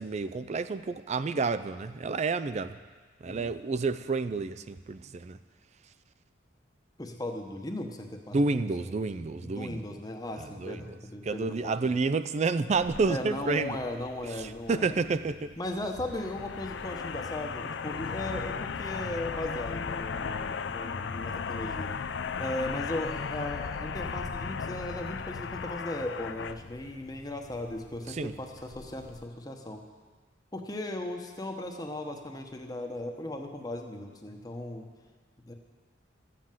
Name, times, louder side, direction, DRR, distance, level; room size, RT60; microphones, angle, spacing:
voice 1, 0.0-2.8 3.2-5.4 8.3-9.8 10.6-10.8 11.2-13.8 14.4-15.5 28.1-28.3, right 4 dB, 35° right, 12 dB, 0.3 m, -29 dB
voice 2, 7.0-12.0 13.1-15.0 15.6-21.9 22.3-29.8 30.5-34.9 35.4-35.5, left 1 dB, 20° left, 3 dB, 1.0 m, -37 dB
sound 1, 12.7-29.3, left 5 dB, 60° left, 0.4 m, -37 dB
13.5 x 7.6 x 7.5 m, 1.5 s
head